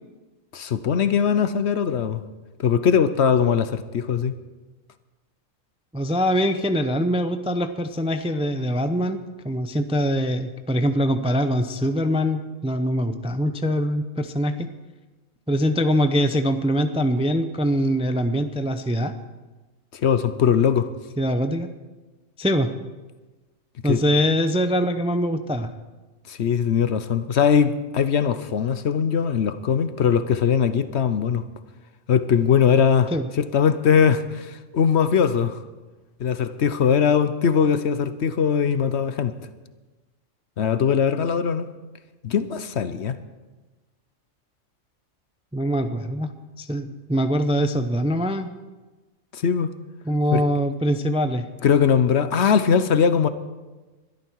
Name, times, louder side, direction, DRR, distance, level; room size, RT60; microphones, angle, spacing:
voice 1, 0.5-2.2 2.6-4.3 19.9-20.9 23.8-24.0 26.3-31.4 32.1-33.1 33.4-35.6 36.2-39.3 40.6-41.7 42.2-43.2 49.3-49.7 50.3-50.4 51.6-53.3, left 7 dB, 60° left, 1.0 m, -20 dB
voice 2, 5.9-9.2 9.4-14.7 15.5-19.1 21.2-21.7 22.4-22.7 23.8-25.7 33.1-33.3 45.5-46.3 46.6-48.5 50.0-51.5, equal, 5° right, 0.4 m, -23 dB
21.5 x 12.5 x 4.7 m
omnidirectional pair, 1.3 m